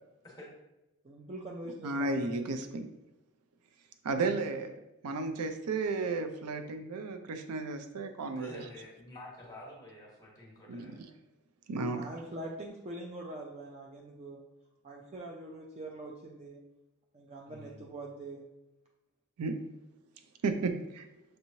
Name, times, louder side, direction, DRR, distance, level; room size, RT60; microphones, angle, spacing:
voice 1, 1.0-2.2 11.9-14.4 14.8-16.6 17.1-18.5, right 1 dB, 30° right, -1 dB, 0.4 m, -43 dB
voice 2, 1.8-2.9 4.0-4.7 5.0-8.6 10.7-11.0 11.7-12.1 19.4-19.6 20.4-21.1, right 3 dB, 90° right, 7 dB, 0.5 m, -33 dB
voice 3, 8.3-11.0 17.4-17.9, left 1 dB, 15° left, -3 dB, 1.1 m, -49 dB
6.4 x 3.0 x 2.7 m, 0.97 s
head